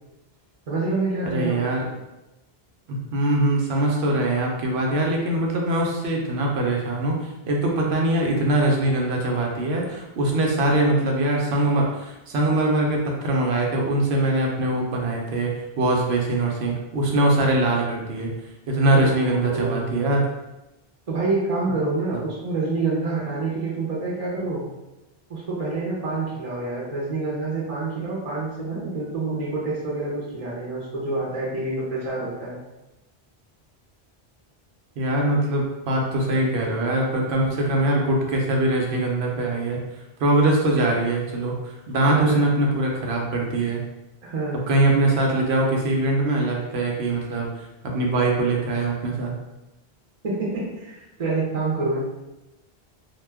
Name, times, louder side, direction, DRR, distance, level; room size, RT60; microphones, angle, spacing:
voice 1, 0.7-1.7 18.9-19.8 21.1-24.7 25.3-32.6 42.1-42.4 44.2-44.6 50.2-52.0, right 3 dB, 45° right, -5 dB, 0.6 m, -27 dB
voice 2, 1.2-1.9 2.9-18.3 18.7-20.3 21.6-21.7 35.0-43.8 44.5-49.3, right 2 dB, 90° right, -1 dB, 0.9 m, -22 dB
2.2 x 2.1 x 3.3 m, 0.99 s
omnidirectional pair, 1.0 m